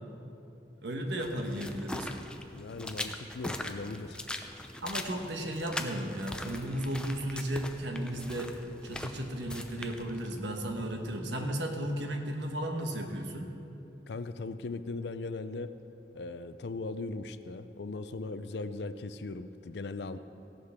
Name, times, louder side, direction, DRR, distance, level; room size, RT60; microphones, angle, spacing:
voice 1, 0.8-2.1 4.8-8.5 8.8-13.5, right 1 dB, 85° right, 3 dB, 1.3 m, -34 dB
sound 1, 1.2-11.2, left 1 dB, 5° left, 0.5 m, -41 dB
voice 2, 2.5-4.2 14.1-15.7 16.1-20.2, left 3 dB, 75° left, 12 dB, 0.5 m, -38 dB
15.5 x 11.5 x 3.6 m, 2.8 s
head